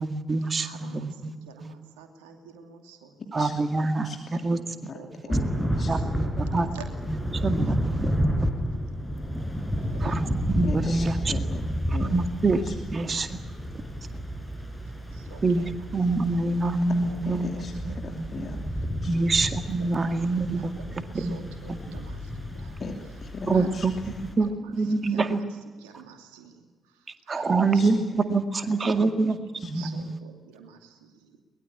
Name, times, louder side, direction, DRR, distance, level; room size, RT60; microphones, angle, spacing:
voice 1, 0.0-1.3 1.6-1.7 3.3-4.1 4.4-4.6 5.7-6.0 6.4-6.7 7.1-7.2 7.4-8.2 10.0-10.3 10.6-11.1 12.1-12.6 12.9-13.3 15.4-17.5 17.9-18.3 19.1-20.7 21.1-21.4 21.7-22.0 23.5-23.9 24.4-25.4 27.3-29.4 29.6-30.2, right 3 dB, 35° right, 8 dB, 2.0 m, -25 dB
voice 2, 0.5-3.2 4.5-7.3 9.7-10.3 13.0-13.2 15.1-15.9 16.3-18.2 19.1-19.3 19.8-20.2 20.5-22.8 23.5-23.8 24.4-28.0 28.9-31.4, right 6 dB, 75° right, 5 dB, 2.6 m, -48 dB
voice 3, 4.0-4.4 4.9-5.0 5.3-5.4 5.8-5.9 10.6-12.2 12.6-12.7 17.3-17.7 18.0-18.6 19.0-19.1 22.8-24.2 27.7-27.9 29.0-29.1 29.6-29.7, left 3 dB, 45° left, 3 dB, 2.8 m, -38 dB
Thunder / Rain, 5.3-24.3, equal, ahead, 6.1 m, -31 dB
23.0 x 20.5 x 8.7 m, 1.4 s
figure-of-eight pair, 40°, 0 cm